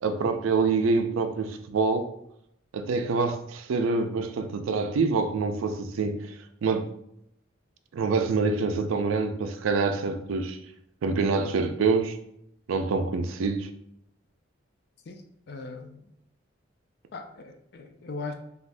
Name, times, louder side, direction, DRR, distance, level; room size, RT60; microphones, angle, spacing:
voice 1, 0.0-2.1 2.7-6.3 6.6-6.9 7.9-10.6 11.0-12.2 12.7-13.7, right 4 dB, 80° right, 0.4 m, -26 dB
voice 2, 15.5-16.1 17.1-18.3, left 3 dB, 50° left, 0.4 m, -39 dB
2.6 x 2.4 x 3.2 m
head